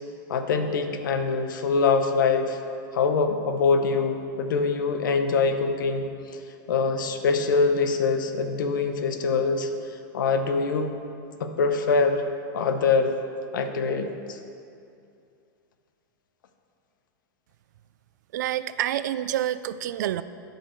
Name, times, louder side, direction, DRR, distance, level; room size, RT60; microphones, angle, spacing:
voice 1, 0.3-2.6 2.9-6.1 6.7-9.7 10.1-10.9 11.4-12.2 12.5-13.1 13.5-14.4, left 4 dB, 85° left, 7 dB, 0.9 m, -24 dB
voice 2, 18.3-20.2, right 12 dB, 65° right, 14 dB, 0.4 m, -28 dB
13.0 x 5.4 x 4.5 m, 2.5 s
supercardioid pair, 170°, 10 cm